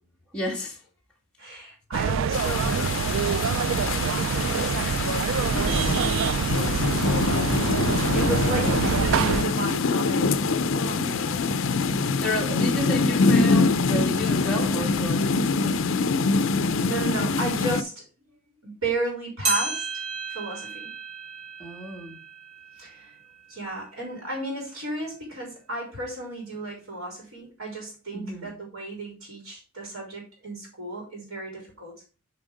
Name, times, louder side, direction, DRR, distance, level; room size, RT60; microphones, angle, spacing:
voice 1, 0.3-0.8 11.0-11.2 11.9-15.8 21.6-22.2 28.1-28.5, equal, 5° left, 1.6 m, -32 dB
voice 2, 1.4-3.6 4.1-7.5 8.1-11.5 16.8-18.1 18.6-19.9 20.3-20.9 22.8-23.1 23.5-31.9, right 2 dB, 80° right, 3.4 m, -34 dB
sound 1, 1.9-9.4, right 6 dB, 60° right, 0.3 m, -25 dB
sound 2, 2.3-17.8, left 4 dB, 60° left, 0.5 m, -24 dB
sound 3, 19.4-24.1 24.6-24.7 25.5-25.6 26.5-26.6, right 3 dB, 25° right, 1.3 m, -34 dB
7.6 x 4.4 x 5.0 m
head